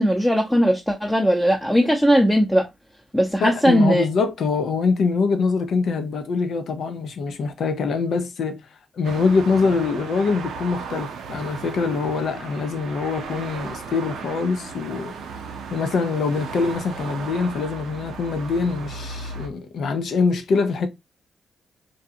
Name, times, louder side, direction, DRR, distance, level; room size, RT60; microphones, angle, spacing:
voice 1, 0.0-2.7 3.1-4.0, equal, 5° left, 0.7 m, -18 dB
voice 2, 3.4-8.6 8.9-15.1 15.7-20.9, left 4 dB, 70° left, 0.5 m, -24 dB
sound 1, 9.0-19.5, right 5 dB, 85° right, 0.5 m, -36 dB
2.6 x 2.2 x 2.6 m
supercardioid pair, 50°, 0 cm